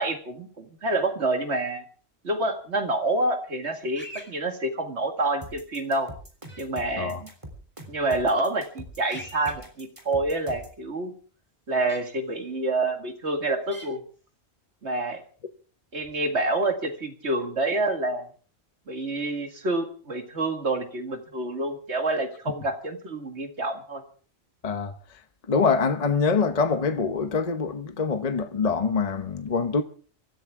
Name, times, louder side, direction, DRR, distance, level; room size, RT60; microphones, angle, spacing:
voice 1, 0.0-1.8 2.2-6.1 6.6-7.3 7.9-11.1 11.7-14.0 14.8-15.2 15.9-18.3 18.9-24.0, right 2 dB, 85° right, 2.3 m, -27 dB
sound 1, 3.9-4.3 6.5-6.6 9.1-9.5 11.9-12.0 13.7-13.9, equal, 10° left, 4.3 m, -41 dB
sound 2, 5.4-10.8, right 1 dB, 30° right, 3.5 m, -43 dB
voice 2, 24.6-25.2 25.5-29.8, left 5 dB, 40° left, 0.9 m, -25 dB
25.0 x 13.5 x 3.6 m
omnidirectional pair, 1.1 m